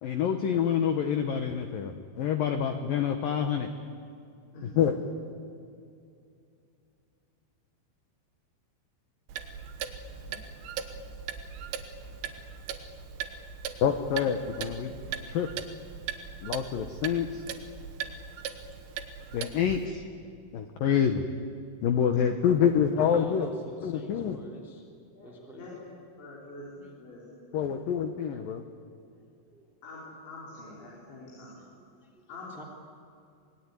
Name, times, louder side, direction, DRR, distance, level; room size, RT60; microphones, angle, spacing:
voice 1, 0.0-3.7 4.6-4.9 13.8-14.9 15.3-15.5 16.4-17.4 19.3-20.0 20.5-21.2 21.8-23.5 23.8-24.4 27.5-28.6, left 8 dB, 80° left, 7 dB, 2.0 m, -27 dB
voice 2, 4.5-5.0 10.1-10.4 12.0-12.1 25.1-27.7 29.8-31.6 32.3-32.7, left 2 dB, 65° left, -5 dB, 7.0 m, -46 dB
Clock, 9.3-19.9, right 8 dB, 80° right, 3.7 m, -39 dB
voice 3, 23.0-24.8 25.2-25.9 26.8-26.9 29.5-29.7 30.8-31.2 31.6-32.6, right 1 dB, ahead, -1 dB, 1.8 m, -47 dB
26.0 x 20.0 x 9.9 m, 2.5 s
omnidirectional pair, 5.7 m